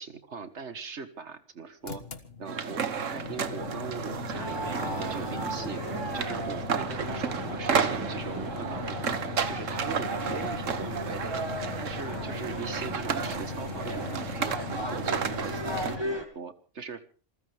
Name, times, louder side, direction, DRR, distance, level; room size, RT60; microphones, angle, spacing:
voice 1, 0.0-2.0 2.4-9.2 9.5-11.4 11.8-14.6 14.9-17.0, right 5 dB, 65° right, 10 dB, 1.9 m, -40 dB
sound 1, 1.8-16.0, left 4 dB, 55° left, 1.7 m, -39 dB
sound 2, 2.5-16.0, right 7 dB, 85° right, 1.5 m, -33 dB
sound 3, 4.3-16.2, right 1 dB, 20° right, 2.4 m, -38 dB
27.5 x 15.0 x 3.5 m, 0.38 s
omnidirectional pair, 1.3 m